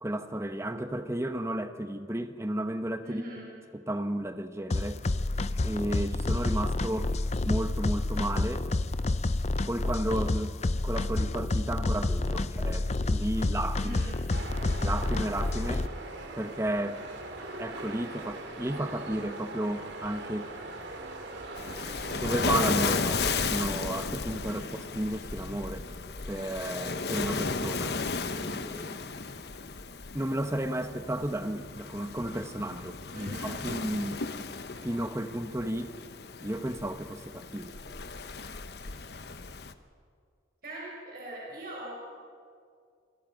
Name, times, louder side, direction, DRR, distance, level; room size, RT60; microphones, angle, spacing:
voice 1, 0.0-3.2 3.7-5.0 5.6-7.2 7.4-8.7 9.7-10.5 10.8-14.0 14.8-15.9 16.3-17.0 17.6-20.5 22.1-24.7 24.9-25.8 26.3-28.0 28.3-29.0 30.1-34.5 34.8-36.0 36.4-37.7, right 1 dB, 15° right, 8 dB, 1.0 m, -33 dB
voice 2, 3.0-3.4 13.8-14.2 24.4-24.7 33.1-33.6 40.6-41.9, right 1 dB, 50° right, -4 dB, 6.0 m, -41 dB
sound 1, 4.7-15.9, left 2 dB, 35° left, 0.5 m, -29 dB
sound 2, 14.3-23.7, right 2 dB, 75° right, 2.6 m, -41 dB
Waves surf, 21.6-39.7, left 4 dB, 60° left, 0.9 m, -34 dB
27.0 x 21.0 x 5.3 m, 2.2 s
head